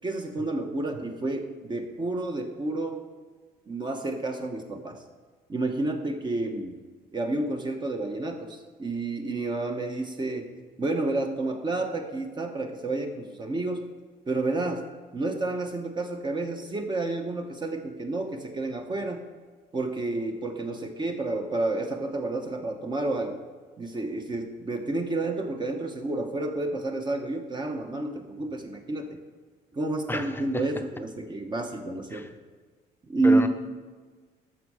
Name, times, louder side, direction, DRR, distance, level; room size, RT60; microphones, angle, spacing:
voice 1, 0.0-3.0 3.7-5.0 5.5-6.8 7.1-10.5 10.8-13.9 14.3-14.8 15.1-19.2 19.7-23.4 23.8-29.2 29.7-32.3 33.1-33.5, right 2 dB, 25° right, 4 dB, 1.0 m, -30 dB
voice 2, 30.1-30.4 32.1-32.3 33.2-33.5, left 2 dB, 10° left, 7 dB, 0.7 m, -30 dB
13.5 x 5.5 x 4.8 m, 1.4 s
cardioid pair, 110°, 17 cm